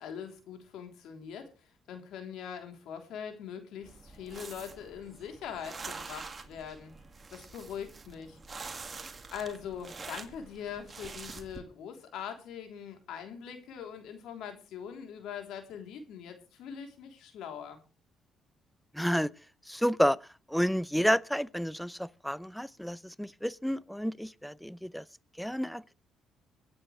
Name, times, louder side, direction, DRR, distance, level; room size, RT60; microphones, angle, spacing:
voice 1, 0.0-6.9 7.3-8.4 9.3-17.8, left 8 dB, 80° left, 3.3 m, -42 dB
sound 1, 3.8-11.6, right 4 dB, 30° right, 2.0 m, -46 dB
voice 2, 18.9-19.3 19.7-20.2 20.5-25.0 25.4-25.9, equal, ahead, 0.6 m, -30 dB
25.5 x 8.8 x 3.2 m
cardioid pair, 85°, 0 cm